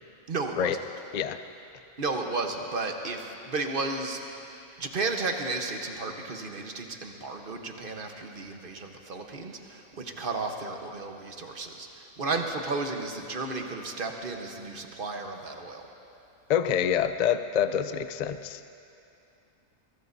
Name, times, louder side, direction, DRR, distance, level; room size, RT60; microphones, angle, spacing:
voice 1, 0.3-0.8 2.0-15.8, right 3 dB, 45° right, 3 dB, 1.2 m, -33 dB
voice 2, 16.5-18.6, left 9 dB, 60° left, 10 dB, 0.4 m, -26 dB
22.5 x 21.0 x 2.7 m, 2.7 s
omnidirectional pair, 1.4 m